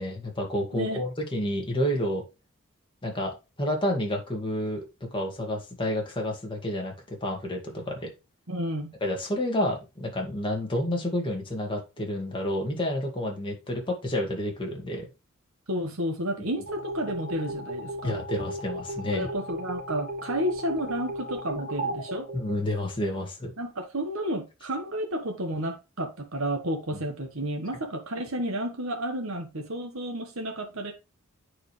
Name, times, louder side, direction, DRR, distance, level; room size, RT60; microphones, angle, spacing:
voice 1, 0.0-2.2 3.0-4.8 5.1-8.1 9.0-15.1 18.0-19.3 22.3-23.5, left 1 dB, 25° left, 2.1 m, -30 dB
voice 2, 0.7-1.0 8.5-8.9 15.7-18.2 19.1-22.3 23.6-30.9, right 1 dB, 65° right, 1.3 m, -31 dB
sound 1, 16.7-23.1, right 1 dB, 45° right, 2.8 m, -36 dB
8.8 x 4.9 x 3.3 m
head